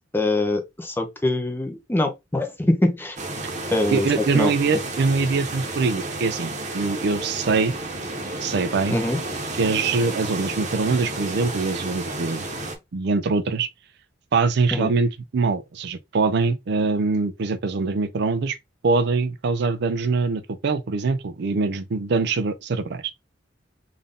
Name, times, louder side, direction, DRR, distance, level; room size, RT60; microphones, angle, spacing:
voice 1, 0.0-3.2 3.7-4.1 4.3-4.5 8.9-9.2 14.7-14.9, left 2 dB, 10° left, 0.7 m, -23 dB
sound 1, 3.2-12.8, right 2 dB, 40° right, 1.0 m, -31 dB
voice 2, 3.9-7.7 8.4-9.0 9.6-12.4 12.9-13.7 14.3-18.6 18.8-23.1, right 4 dB, 60° right, 0.4 m, -23 dB
3.7 x 2.6 x 3.5 m
head